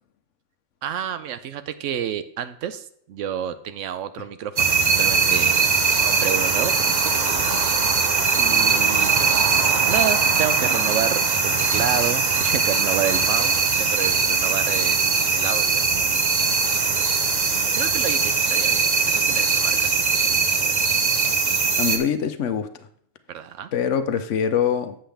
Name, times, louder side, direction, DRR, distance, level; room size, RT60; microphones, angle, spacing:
voice 1, 0.8-5.7 6.0-7.7 8.4-15.9 17.7-18.9 19.1-19.9 23.3-23.7, right 9 dB, 75° right, 13 dB, 0.9 m, -30 dB
sound 1, 4.6-22.0, right 4 dB, 40° right, 0.8 m, -20 dB
voice 2, 21.8-22.7 23.7-25.0, left 7 dB, 70° left, 10 dB, 1.0 m, -23 dB
7.8 x 7.5 x 3.4 m, 0.65 s
omnidirectional pair, 1.4 m